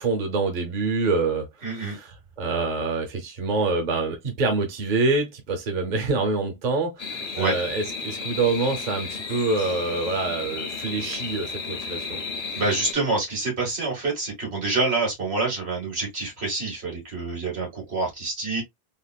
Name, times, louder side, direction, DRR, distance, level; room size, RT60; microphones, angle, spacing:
voice 1, 0.0-12.2, right 3 dB, 50° right, 0.9 m, -26 dB
voice 2, 1.6-2.0 7.3-7.5 12.6-18.6, right 3 dB, 85° right, 2.0 m, -27 dB
sound 1, 7.0-12.9, left 4 dB, 45° left, 0.6 m, -33 dB
3.6 x 2.4 x 2.2 m
omnidirectional pair, 1.0 m